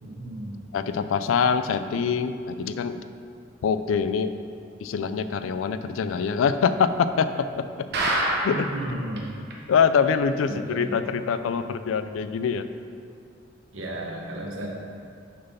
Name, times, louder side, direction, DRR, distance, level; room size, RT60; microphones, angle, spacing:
voice 1, 0.0-0.6 8.5-9.3 10.5-11.1 13.7-14.7, right 1 dB, 80° right, -1 dB, 1.1 m, -34 dB
voice 2, 0.7-3.0 3.6-4.4 4.8-7.7 8.4-8.6 9.7-12.7, left 6 dB, 85° left, 11 dB, 0.3 m, -24 dB
sound 1, 7.9-8.8 9.2-9.3 9.5-9.6 10.1-10.2, right 1 dB, 55° right, 0.9 m, -25 dB
6.4 x 4.0 x 5.5 m, 2.3 s
head